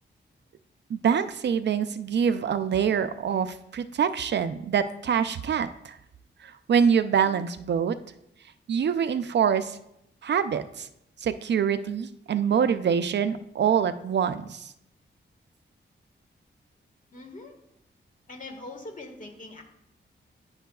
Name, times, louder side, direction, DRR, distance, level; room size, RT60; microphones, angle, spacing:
voice 1, 0.9-6.0 6.4-8.0 8.7-9.8 10.2-10.9 11.2-14.7, right 7 dB, 60° right, 11 dB, 0.4 m, -25 dB
voice 2, 17.1-17.5 18.3-19.6, left 2 dB, 40° left, 2 dB, 1.5 m, -42 dB
10.5 x 5.6 x 2.3 m, 0.79 s
wide cardioid pair, 95°, 20 cm